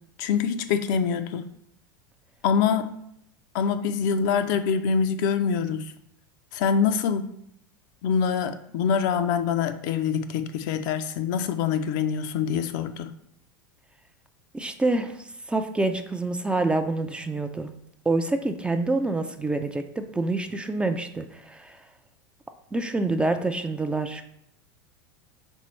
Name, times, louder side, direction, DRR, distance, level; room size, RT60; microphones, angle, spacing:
voice 1, 0.2-1.4 2.4-3.0 3.5-5.9 6.5-7.3 8.0-13.1, left 6 dB, 60° left, 9 dB, 0.4 m, -25 dB
voice 2, 14.5-17.7 18.1-21.8 22.7-24.2, right 2 dB, 10° right, 7 dB, 0.3 m, -27 dB
4.4 x 3.5 x 3.1 m, 0.73 s
hypercardioid pair, 100°, 12 cm